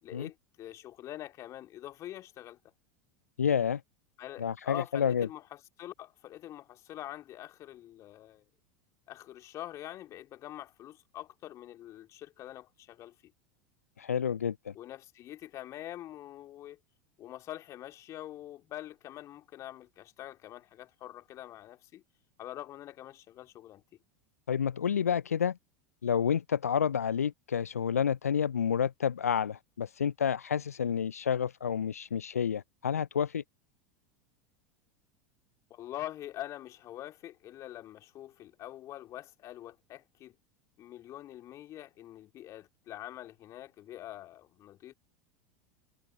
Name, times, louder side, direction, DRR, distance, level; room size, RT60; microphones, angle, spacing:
voice 1, 0.0-2.6 4.2-8.4 9.1-13.3 14.7-16.8 17.2-22.0 22.4-23.8 35.7-40.4 40.8-44.9, left 13 dB, 40° left, 2.4 m, -45 dB
voice 2, 3.4-3.8 4.4-5.3 14.0-14.7 24.5-25.6 26.0-33.4, left 7 dB, 85° left, 0.4 m, -29 dB
figure-of-eight pair, 85°, 8 cm